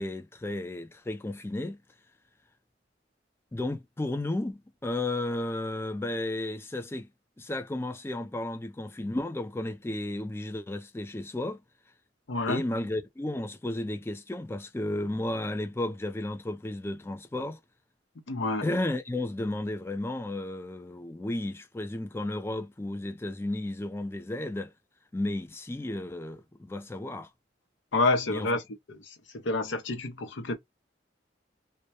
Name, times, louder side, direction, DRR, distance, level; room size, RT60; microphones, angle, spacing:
voice 1, 0.0-1.8 3.5-7.1 7.4-11.6 12.5-17.6 18.6-24.7 25.1-27.3 28.3-28.5, left 1 dB, 15° left, 0.3 m, -33 dB
voice 2, 12.3-12.6 18.3-18.7 27.9-28.6 28.9-29.1 29.4-30.6, left 2 dB, 90° left, 0.7 m, -28 dB
2.2 x 2.1 x 2.7 m
head